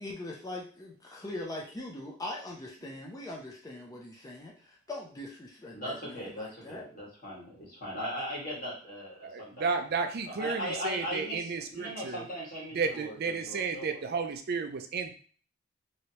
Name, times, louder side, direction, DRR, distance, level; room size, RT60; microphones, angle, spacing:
voice 1, 0.0-6.9, left 2 dB, 15° left, -1 dB, 0.4 m, -41 dB
voice 2, 5.7-9.7 10.4-14.0, equal, 40° left, -5 dB, 1.6 m, -38 dB
voice 3, 9.2-12.2 12.7-15.1, right 5 dB, 50° right, 7 dB, 0.4 m, -32 dB
3.2 x 2.7 x 2.8 m, 0.44 s
head